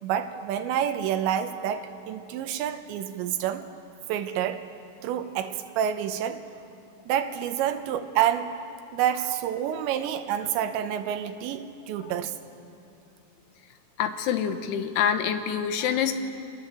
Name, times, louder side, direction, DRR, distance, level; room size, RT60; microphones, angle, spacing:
voice 1, 0.0-3.7 4.1-4.7 5.0-6.4 7.1-8.6 8.9-12.3, right 10 dB, 80° right, 8 dB, 3.2 m, -28 dB
voice 2, 14.0-16.2, left 8 dB, 70° left, 8 dB, 2.8 m, -26 dB
26.0 x 20.0 x 7.7 m, 2.5 s
omnidirectional pair, 5.3 m